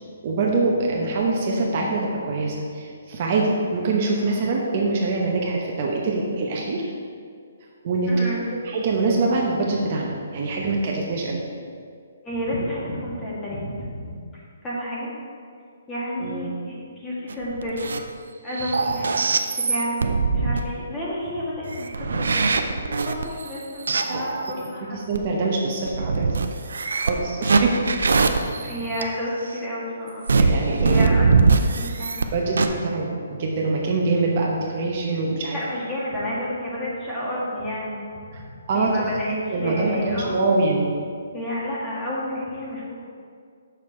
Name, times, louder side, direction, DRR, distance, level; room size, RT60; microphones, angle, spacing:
voice 1, 0.2-6.9 7.8-8.1 8.6-11.4 16.2-16.5 24.1-24.2 25.1-26.3 26.9-27.8 30.4-31.3 32.3-35.6 38.3-38.4 38.7-38.9 39.3-41.0, right 3 dB, 40° right, -2 dB, 0.9 m, -24 dB
voice 2, 8.1-8.4 12.2-14.1 14.6-15.1 15.9-17.9 18.4-19.2 19.6-20.0 20.3-25.0 28.3-30.3 30.8-32.4 35.5-38.4 38.7-40.4 41.3-42.9, equal, 10° left, -7 dB, 1.6 m, -30 dB
sound 1, 17.3-18.1 18.5-20.6 21.7-24.5 25.1-25.2 25.9-29.0 30.3-32.3 32.5-32.7, right 4 dB, 85° right, 0.5 m, -22 dB
6.9 x 6.1 x 4.5 m, 2.2 s
hypercardioid pair, 165°, 0 cm